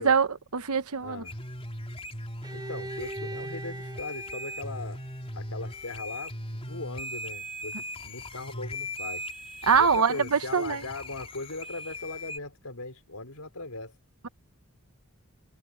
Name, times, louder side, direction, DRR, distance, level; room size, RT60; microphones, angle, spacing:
voice 1, 0.0-1.2 9.6-10.8, right 6 dB, 75° right, 1.1 m, -24 dB
voice 2, 1.0-1.4 2.5-5.0 5.3-9.3 9.8-13.9, left 3 dB, 75° left, 4.7 m, -39 dB
sound 1, 1.2-12.4, left 1 dB, 25° left, 3.8 m, -39 dB
Bowed string instrument, 2.4-6.3, right 2 dB, 20° right, 5.9 m, -42 dB
head